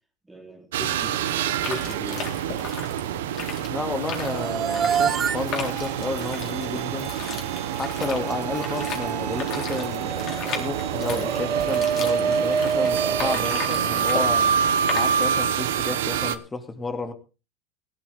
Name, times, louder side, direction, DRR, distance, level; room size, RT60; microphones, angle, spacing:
voice 1, 0.3-2.6, equal, 10° right, 3.8 m, -39 dB
sound 1, 0.7-16.4, right 8 dB, 85° right, 1.1 m, -27 dB
sound 2, 1.5-15.5, left 7 dB, 45° left, 4.0 m, -37 dB
voice 2, 3.7-7.1 7.7-14.6 14.9-17.1, left 3 dB, 15° left, 2.4 m, -32 dB
sound 3, 4.2-14.4, right 6 dB, 30° right, 0.6 m, -28 dB
17.5 x 12.5 x 3.6 m
supercardioid pair, 110°, 0 cm